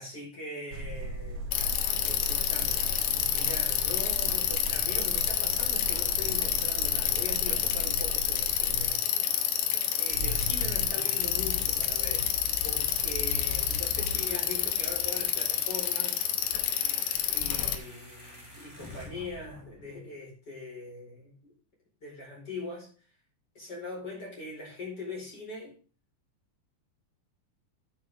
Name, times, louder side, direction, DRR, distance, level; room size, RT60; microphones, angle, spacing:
voice 1, 0.0-1.4 2.0-9.0 10.0-12.3 12.6-16.3 17.2-21.5 22.0-22.9 23.5-25.7, left 2 dB, 25° left, -2 dB, 5.0 m, -41 dB
sound 1, 0.7-8.9, right 1 dB, 70° right, 2.2 m, -38 dB
Bicycle, 1.5-17.8, left 10 dB, 85° left, 3.0 m, -29 dB
sound 2, 10.0-20.0, left 2 dB, 5° left, 2.5 m, -40 dB
10.5 x 7.7 x 3.6 m, 0.39 s
omnidirectional pair, 4.4 m